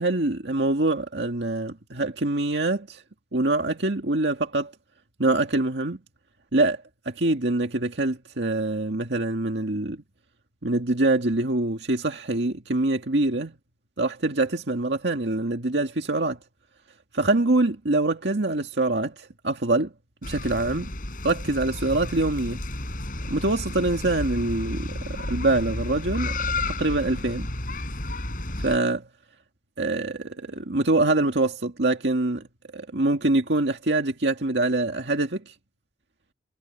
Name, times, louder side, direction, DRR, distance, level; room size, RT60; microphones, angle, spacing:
voice 1, 0.0-3.0 3.3-4.7 5.2-6.0 6.5-10.0 10.6-13.5 14.0-16.4 17.1-19.9 20.2-20.9 21.2-22.6 23.3-26.4 26.7-27.5 28.6-29.1 29.8-32.5 32.7-35.5, right 2 dB, 80° right, 2.0 m, -24 dB
sound 1, 20.2-28.8, left 2 dB, 55° left, 4.7 m, -32 dB
head